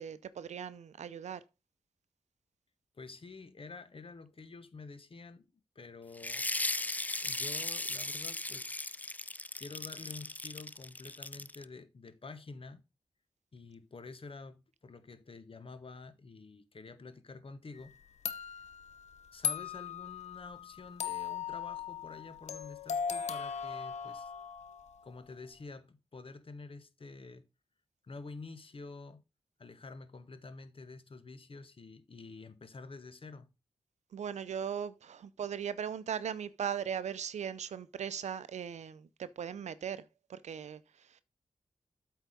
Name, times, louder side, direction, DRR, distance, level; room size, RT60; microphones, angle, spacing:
voice 1, 0.0-1.4 34.1-40.8 41.1-41.2, right 8 dB, 80° right, 0.5 m, -38 dB
voice 2, 2.9-5.5 5.7-6.5 7.2-8.8 9.6-12.8 13.5-18.0 19.3-24.3 25.0-27.5 28.0-29.2 29.6-33.5, left 3 dB, 50° left, 1.2 m, -49 dB
sound 1, 6.2-11.6, left 2 dB, 15° left, 0.4 m, -37 dB
sound 2, 17.8-17.9 18.3-25.0, left 7 dB, 85° left, 0.7 m, -38 dB
8.2 x 4.6 x 5.2 m
cardioid pair, 45°, 12 cm